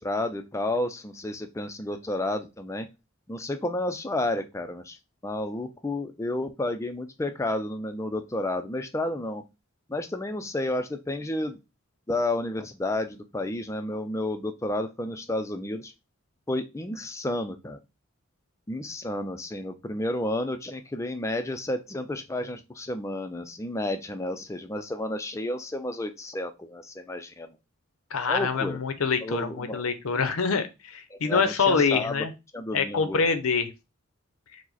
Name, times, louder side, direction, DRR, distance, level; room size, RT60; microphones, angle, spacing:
voice 1, 0.0-2.9 3.3-5.0 5.2-9.4 9.9-11.6 12.1-15.9 16.5-17.8 18.7-27.6 28.3-28.8 29.2-29.8 31.1-32.3 32.5-33.2, left 1 dB, 15° left, 8 dB, 0.4 m, -31 dB
voice 2, 28.1-32.3 32.7-33.7, left 5 dB, 85° left, 10 dB, 0.6 m, -25 dB
4.8 x 2.1 x 4.0 m, 0.26 s
head